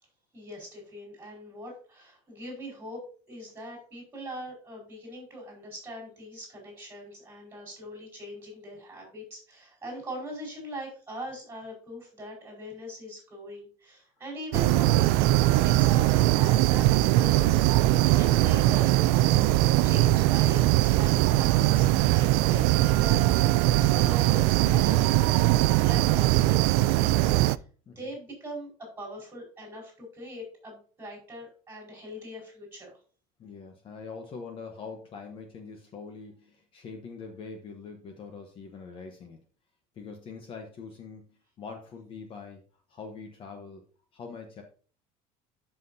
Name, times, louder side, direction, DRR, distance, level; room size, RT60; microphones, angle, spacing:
voice 1, 0.3-17.7 18.0-19.5 19.8-23.2 23.9-28.7 29.0-33.0, equal, 15° right, -1 dB, 4.8 m, -41 dB
sound 1, 14.5-27.6, right 16 dB, 70° right, 0.4 m, -21 dB
voice 2, 33.4-39.4 39.9-42.6 42.9-43.8 44.1-44.6, left 5 dB, 35° left, 4 dB, 1.0 m, -43 dB
13.0 x 5.8 x 2.7 m, 0.41 s
cardioid pair, 165°, 16 cm